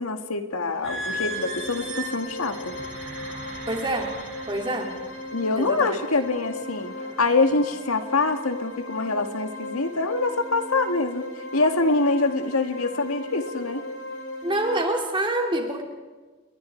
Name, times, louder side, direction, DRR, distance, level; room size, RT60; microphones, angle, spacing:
voice 1, 0.0-2.7 5.3-11.2 11.5-13.8, left 3 dB, 90° left, 7 dB, 1.9 m, -25 dB
sound 1, 0.7-14.8, left 1 dB, 65° left, 2.4 m, -37 dB
sound 2, 0.8-5.3 6.0-6.3 6.9-7.2, right 1 dB, 65° right, 6.7 m, -36 dB
voice 2, 3.7-4.1 4.5-4.9 5.6-5.9 14.4-15.8, right 1 dB, 25° right, 2 dB, 3.1 m, -26 dB
28.5 x 22.0 x 4.6 m, 1.3 s
head